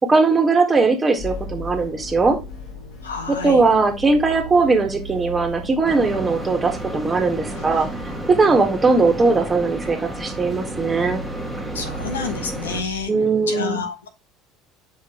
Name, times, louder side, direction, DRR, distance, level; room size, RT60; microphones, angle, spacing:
voice 1, 0.0-2.4 3.3-7.9 8.3-11.2 13.1-13.8, right 3 dB, 20° right, 1.8 m, -19 dB
sound 1, 1.2-13.1, right 1 dB, 60° left, 1.9 m, -37 dB
voice 2, 3.0-3.6 11.7-13.1 13.5-14.1, left 4 dB, 75° left, 1.1 m, -29 dB
sound 2, 5.8-12.8, right 1 dB, 5° right, 1.7 m, -32 dB
8.2 x 5.0 x 3.1 m
figure-of-eight pair, 65°, 0 cm